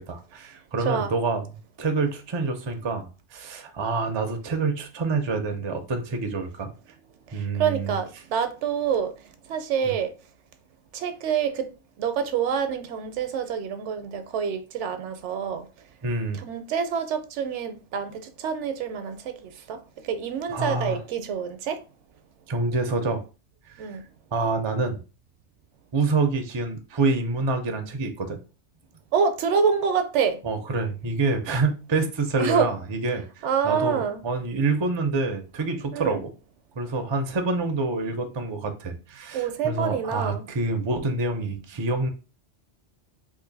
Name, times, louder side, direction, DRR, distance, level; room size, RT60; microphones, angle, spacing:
voice 1, 0.0-1.5 1.8-6.7 7.3-8.0 9.8-9.9 16.0-16.4 20.5-21.0 22.5-23.2 24.3-25.0 25.9-28.4 30.4-36.3 36.8-42.1, right 3 dB, 40° right, 0.4 m, -27 dB
voice 2, 7.3-10.1 10.9-11.7 12.0-15.7 16.4-21.8 23.8-24.0 29.1-30.4 32.4-32.8 33.4-34.2 35.9-36.2 39.3-40.5, right 7 dB, 80° right, 0.9 m, -27 dB
3.0 x 2.5 x 3.8 m
omnidirectional pair, 1.2 m